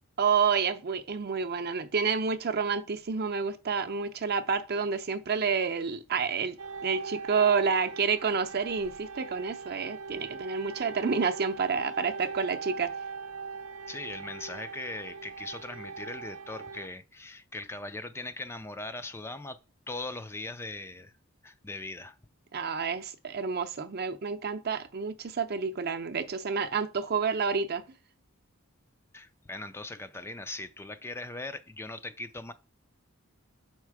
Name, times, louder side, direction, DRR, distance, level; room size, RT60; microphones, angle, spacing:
voice 1, 0.2-6.6 6.8-12.9 22.5-27.8, right 5 dB, 50° right, 0.6 m, -29 dB
sound 1, 6.6-16.9, right 5 dB, 90° right, 0.6 m, -41 dB
voice 2, 13.9-19.6 19.9-21.1 21.4-22.2 29.1-32.5, left 2 dB, 10° left, 0.3 m, -40 dB
5.6 x 4.5 x 4.7 m
head